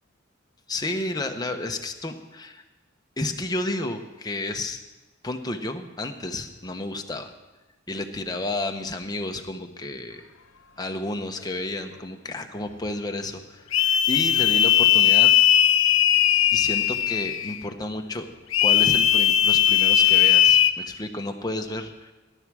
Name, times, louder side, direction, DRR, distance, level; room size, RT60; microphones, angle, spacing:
voice 1, 0.7-2.6 3.2-4.8 5.2-7.3 7.9-10.2 10.8-15.3 16.5-18.3 18.6-22.1, left 2 dB, 20° left, 5 dB, 1.1 m, -31 dB
sound 1, 13.7-17.6 18.5-20.7, left 11 dB, 75° left, 0.6 m, -18 dB
17.5 x 11.0 x 6.3 m, 1.1 s
head